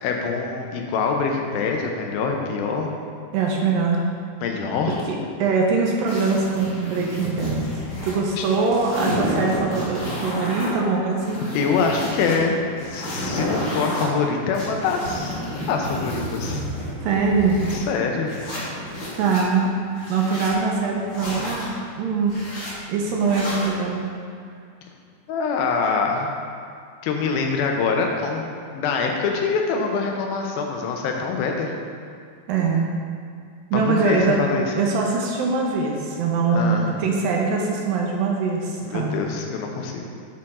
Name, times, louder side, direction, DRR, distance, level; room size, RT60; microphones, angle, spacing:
voice 1, 0.0-2.9 4.4-5.0 8.4-8.5 9.4-9.6 10.4-10.8 11.4-16.6 17.7-18.7 25.3-26.4 27.0-31.7 33.7-34.7 36.5-36.9 38.8-40.0, left 5 dB, 80° left, 2 dB, 2.5 m, -25 dB
voice 2, 3.3-4.1 5.1-7.6 8.0-11.4 17.0-17.6 19.1-19.7 20.1-22.3 22.9-24.1 32.5-32.9 33.7-34.4 34.8-39.1, right 4 dB, 80° right, -1 dB, 2.3 m, -22 dB
sound 1, 6.1-8.2 8.4-10.7 11.1-12.4 12.8-14.0 14.5-17.8 18.3-19.4 19.9-20.6 21.1-21.7 22.3-22.7 23.2-23.7, equal, 50° left, 2.7 m, -30 dB
7.6 x 4.3 x 4.2 m, 2.3 s
omnidirectional pair, 4.3 m